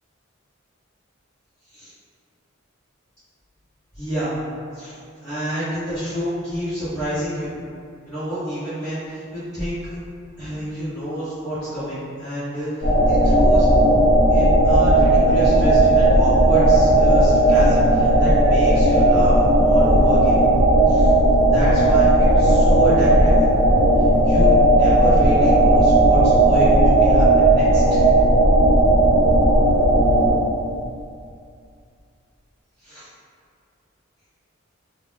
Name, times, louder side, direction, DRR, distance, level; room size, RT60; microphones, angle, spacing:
voice 1, 4.0-4.3 4.7-5.0 5.2-7.5 8.0-10.0 10.4-13.7 14.3-20.4 20.9-21.1 21.5-23.4 24.0-28.0 32.8-33.1, equal, 15° left, -17 dB, 0.8 m, -28 dB
sound 1, 12.8-30.3, right 1 dB, 60° left, 1.0 m, -15 dB
2.3 x 2.1 x 3.8 m, 2.3 s
head